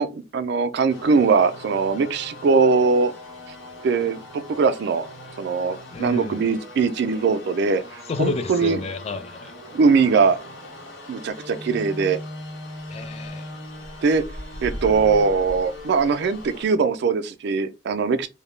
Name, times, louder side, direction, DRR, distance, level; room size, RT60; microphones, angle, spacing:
voice 1, 0.0-3.2 3.8-5.1 5.4-8.8 9.7-10.4 11.1-12.2 14.0-14.2 14.6-18.3, right 5 dB, 65° right, 0.3 m, -21 dB
sound 1, 0.9-16.7, left 1 dB, 85° left, 1.0 m, -39 dB
voice 2, 5.9-6.5 8.1-9.5 12.9-13.5, left 4 dB, 35° left, 0.4 m, -30 dB
2.2 x 2.0 x 3.0 m
head